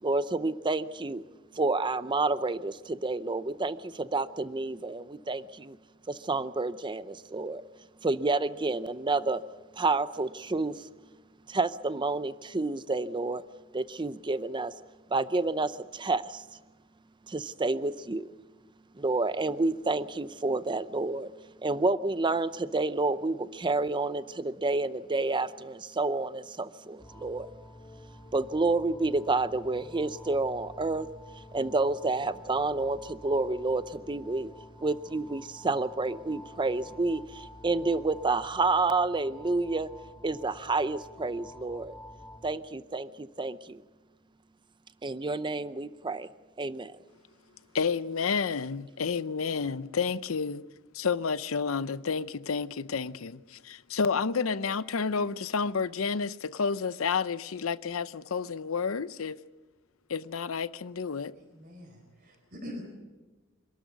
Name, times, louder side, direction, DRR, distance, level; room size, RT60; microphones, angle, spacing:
voice 1, 0.0-1.2 1.5-5.8 6.1-7.6 8.0-9.4 9.8-10.9 11.5-13.4 13.7-14.7 15.1-16.4 17.3-18.3 18.9-21.3 21.6-27.5 28.3-31.1 31.4-34.5 34.8-39.9 40.2-41.9 42.4-43.8 45.0-46.3 46.6-46.9, right 3 dB, 25° right, 0.6 m, -29 dB
sound 1, 27.0-42.5, left 1 dB, 20° left, 4.2 m, -49 dB
voice 2, 47.7-50.6 50.9-59.4 60.1-61.3, left 5 dB, 85° left, 0.7 m, -30 dB
voice 3, 61.5-62.8, left 1 dB, 50° right, 4.4 m, -43 dB
26.5 x 13.0 x 9.3 m
head